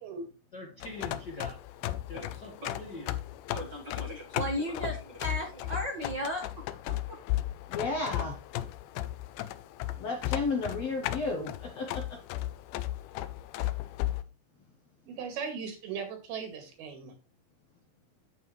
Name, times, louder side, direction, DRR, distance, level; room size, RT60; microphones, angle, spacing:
voice 1, 0.5-1.6 2.1-3.1, left 2 dB, 45° left, -1 dB, 1.4 m, -43 dB
sound 1, 0.8-14.2, left 14 dB, 85° left, 1.8 m, -35 dB
voice 2, 3.5-6.4 7.1-7.2, equal, 55° right, -2 dB, 1.3 m, -35 dB
voice 3, 7.7-8.4 10.0-12.2, left 3 dB, 70° left, 2 dB, 1.6 m, -33 dB
voice 4, 15.1-17.2, right 6 dB, 90° right, 5 dB, 3.9 m, -38 dB
8.9 x 8.2 x 3.2 m, 0.30 s
omnidirectional pair, 4.3 m